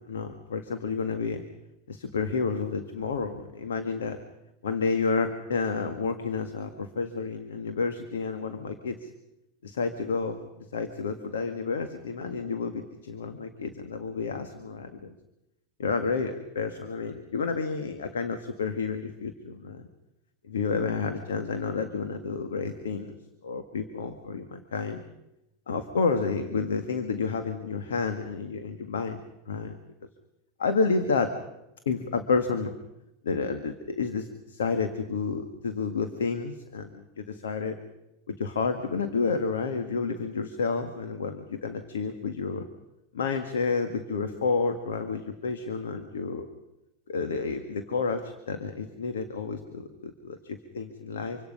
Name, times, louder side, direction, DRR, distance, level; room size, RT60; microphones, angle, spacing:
voice 1, 0.0-1.4 1.9-4.2 4.6-9.1 9.6-15.1 15.8-19.9 20.4-23.1 23.4-25.0 25.7-29.2 29.5-29.8 30.6-31.3 31.8-32.7 33.2-37.8 38.3-42.7 43.1-46.5 47.1-51.4, left 4 dB, 85° left, 8 dB, 1.8 m, -30 dB
26.0 x 25.0 x 5.5 m, 0.90 s
hypercardioid pair, 100°, 0 cm